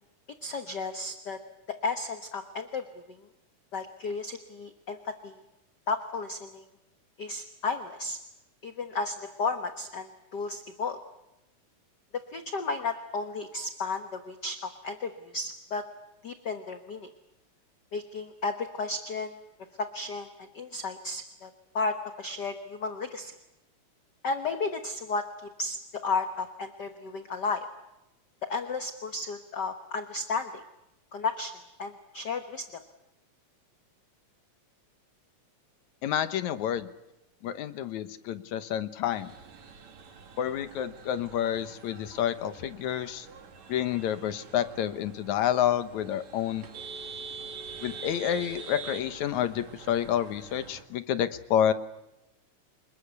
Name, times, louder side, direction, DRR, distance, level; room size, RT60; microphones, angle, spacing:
voice 1, 0.4-1.4 1.7-3.2 3.7-5.4 5.9-6.6 7.2-8.2 8.6-11.0 12.3-15.8 16.2-17.1 17.9-19.4 19.8-23.3 24.2-27.6 28.5-30.6 31.1-31.5 31.8-32.6, left 3 dB, 50° left, 8 dB, 1.4 m, -33 dB
voice 2, 36.0-36.9 37.4-39.3 40.4-43.3 43.7-46.7 47.8-51.7, left 10 dB, 75° left, 12 dB, 2.4 m, -29 dB
sound 1, 39.1-50.8, right 4 dB, 65° right, 3.6 m, -45 dB
27.0 x 20.5 x 8.2 m, 0.92 s
omnidirectional pair, 3.5 m